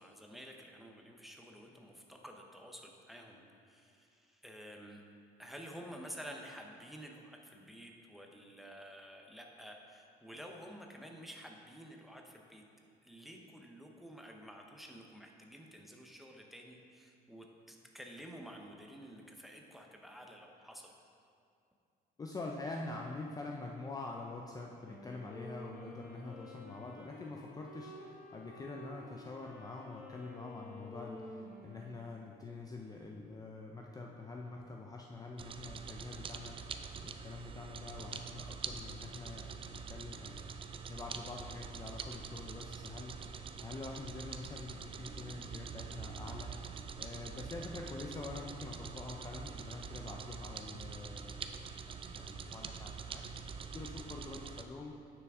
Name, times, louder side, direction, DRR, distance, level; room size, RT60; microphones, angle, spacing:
voice 1, 0.0-5.0 5.4-12.6 13.0-20.9, equal, ahead, 1 dB, 0.8 m, -51 dB
voice 2, 22.2-43.3 43.6-46.7 47.0-54.9, left 3 dB, 20° left, 1 dB, 0.5 m, -46 dB
Wind instrument woodwind instrument, 24.8-32.4, left 1 dB, 60° left, 1.1 m, -51 dB
sound 1, 35.4-54.6, right 6 dB, 30° right, 0.4 m, -45 dB
9.4 x 6.0 x 3.6 m, 2.4 s
cardioid pair, 110°, 17 cm